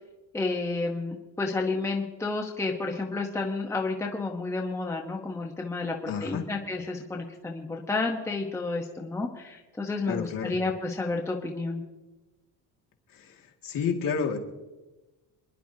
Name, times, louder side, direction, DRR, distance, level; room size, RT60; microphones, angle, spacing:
voice 1, 0.3-11.8, left 3 dB, 5° left, 0 dB, 1.0 m, -31 dB
voice 2, 6.1-6.4 10.1-10.5 13.1-14.4, left 6 dB, 50° left, 0 dB, 2.2 m, -30 dB
28.0 x 11.0 x 2.8 m, 1.1 s
cardioid pair, 155°, 43 cm